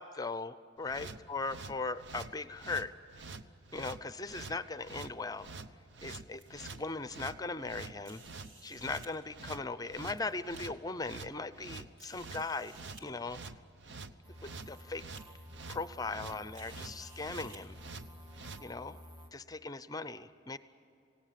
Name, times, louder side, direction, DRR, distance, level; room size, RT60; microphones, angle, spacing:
voice 1, 0.0-2.9 3.7-5.5 6.0-8.2 8.6-12.7 13.0-13.4 14.3-15.0 15.7-17.8 18.6-19.0 19.3-20.6, left 3 dB, 20° left, 14 dB, 0.6 m, -39 dB
sound 1, 0.8-18.6, right 4 dB, 60° right, 0.9 m, -47 dB
sound 2, 5.8-6.8 8.0-9.1 9.8-10.6 11.3-11.4 12.0-13.1 14.0-14.1 14.4-14.8 15.1-15.2 16.5-17.6, right 3 dB, 90° right, 3.3 m, -57 dB
sound 3, 14.2-19.3, equal, 25° right, 1.8 m, -52 dB
29.0 x 17.5 x 7.5 m, 2.6 s
head